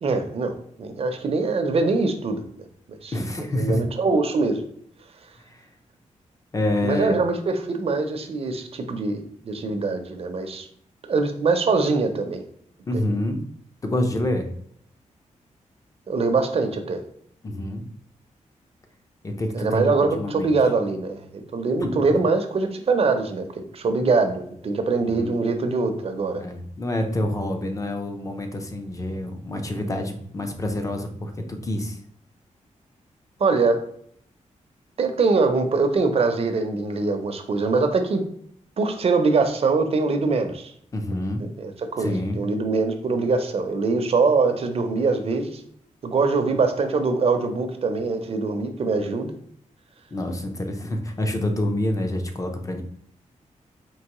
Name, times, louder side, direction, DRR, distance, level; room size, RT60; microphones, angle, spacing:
voice 1, 0.0-2.4 2.9-3.1 3.6-4.6 6.8-10.7 11.0-12.4 16.1-17.0 19.5-23.5 23.7-26.4 33.4-33.8 35.0-38.2 38.8-40.7 41.6-45.6 46.0-49.3, right 4 dB, 50° right, 6 dB, 0.6 m, -23 dB
voice 2, 3.1-3.8 5.5-5.7 6.5-7.1 12.9-13.4 13.8-14.5 17.4-17.8 19.2-20.5 21.8-22.2 25.1-25.4 26.4-32.0 40.9-41.4 42.0-42.4 50.1-52.8, left 1 dB, 25° left, 5 dB, 0.6 m, -27 dB
4.6 x 3.0 x 3.0 m, 0.66 s
wide cardioid pair, 125°, 13 cm